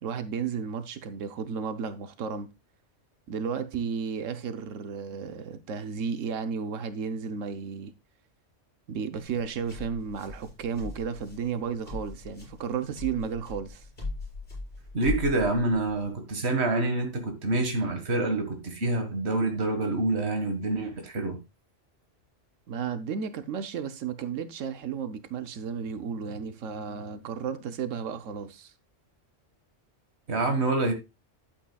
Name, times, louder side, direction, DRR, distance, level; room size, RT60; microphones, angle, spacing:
voice 1, 0.0-2.5 3.3-7.9 8.9-13.9 22.7-28.7, right 6 dB, 90° right, 1.2 m, -33 dB
sound 1, 9.2-16.1, left 3 dB, 50° left, 6.5 m, -39 dB
voice 2, 14.9-21.4 30.3-30.9, right 2 dB, 60° right, 2.0 m, -27 dB
11.5 x 8.6 x 2.3 m
omnidirectional pair, 1.3 m